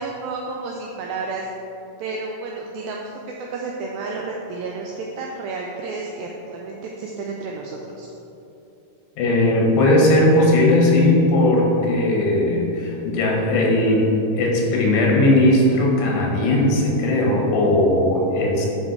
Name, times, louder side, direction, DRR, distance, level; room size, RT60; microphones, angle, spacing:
voice 1, 0.0-1.5 2.0-3.1 3.4-8.1, right 3 dB, 90° right, -1 dB, 2.0 m, -31 dB
voice 2, 9.2-14.0 14.4-18.7, left 1 dB, 85° left, -1 dB, 3.3 m, -18 dB
9.0 x 3.9 x 4.6 m, 2.9 s
omnidirectional pair, 4.7 m